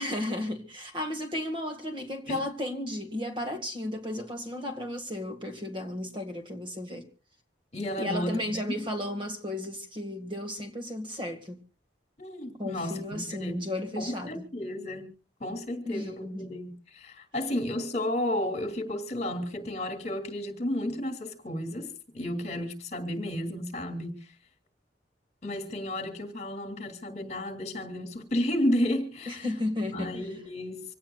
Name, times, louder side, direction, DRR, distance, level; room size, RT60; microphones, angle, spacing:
voice 1, 0.0-7.1 8.0-11.6 12.6-14.4 15.9-16.6 29.3-30.2, left 1 dB, 25° right, 2.0 m, -34 dB
voice 2, 7.7-8.5 12.2-13.6 14.0-15.1 15.4-24.3 25.4-29.5 29.8-30.9, left 1 dB, 35° left, 2.9 m, -32 dB
25.5 x 17.5 x 2.4 m
head